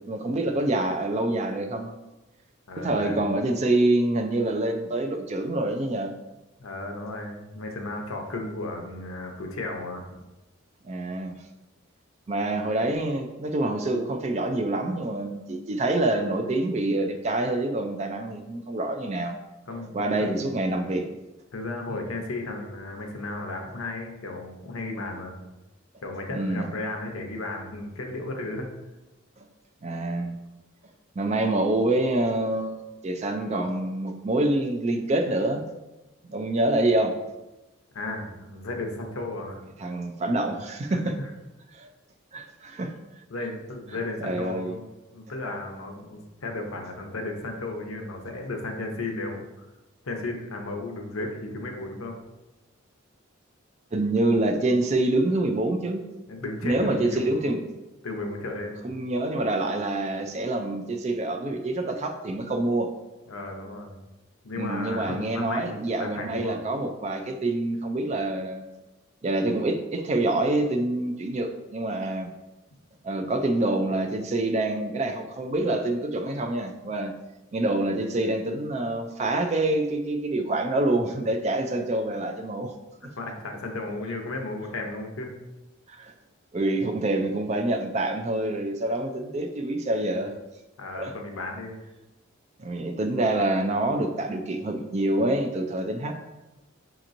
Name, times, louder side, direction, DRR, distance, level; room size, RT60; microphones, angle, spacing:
voice 1, 0.1-1.9 2.8-6.1 10.8-11.4 12.3-19.4 19.9-21.1 26.3-26.7 29.8-30.3 31.2-35.6 36.3-37.1 39.8-41.2 41.7-41.9 42.3-42.9 44.2-44.8 53.9-56.0 56.6-57.6 58.8-62.9 64.6-68.6 69.2-72.3 73.0-77.1 77.5-82.7 83.0-83.1 85.9-86.1 86.5-90.3 90.9-91.1 92.6-96.1, right 2 dB, 35° right, 5 dB, 0.4 m, -26 dB
voice 2, 2.7-3.2 6.6-10.2 19.7-20.3 21.5-25.4 26.0-28.7 37.9-39.6 40.9-41.0 43.3-49.7 50.0-52.2 56.3-57.4 58.0-58.8 63.3-64.0 64.4-66.6 83.2-85.4 90.8-91.8, left 2 dB, 90° left, 2 dB, 0.7 m, -34 dB
6.1 x 2.9 x 2.5 m, 1.0 s
head